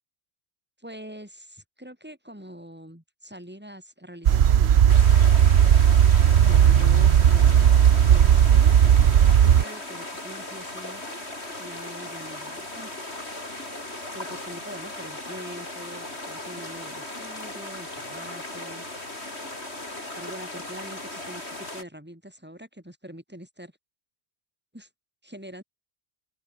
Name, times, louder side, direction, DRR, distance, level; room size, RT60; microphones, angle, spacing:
voice 1, 0.8-5.1 6.5-8.8 9.4-11.2 11.6-12.9 14.1-18.9 20.2-23.7 24.7-24.9 25.2-25.6, equal, 10° right, 4.6 m, -43 dB
sound 1, 4.3-9.6, right 9 dB, 80° right, 1.1 m, -16 dB
sound 2, 4.9-21.8, left 2 dB, 85° left, 6.2 m, -37 dB
open air
omnidirectional pair, 1.1 m